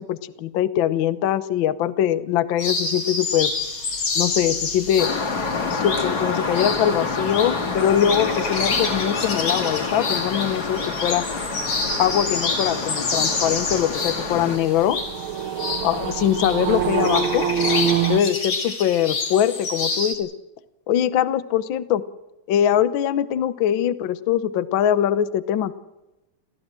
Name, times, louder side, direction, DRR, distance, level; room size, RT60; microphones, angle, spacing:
voice 1, 0.0-3.5 4.1-5.1 5.7-11.2 12.0-15.0 15.8-17.5 18.1-20.3 20.9-22.0 22.5-25.7, left 10 dB, 75° left, 15 dB, 1.1 m, -22 dB
sound 1, 2.6-20.1, left 4 dB, 55° left, 4.5 m, -28 dB
sound 2, 3.3-18.2, right 6 dB, 55° right, 1.6 m, -29 dB
sound 3, 5.0-14.6, left 4 dB, 35° left, 2.3 m, -28 dB
28.5 x 15.0 x 7.6 m, 1.0 s
omnidirectional pair, 3.5 m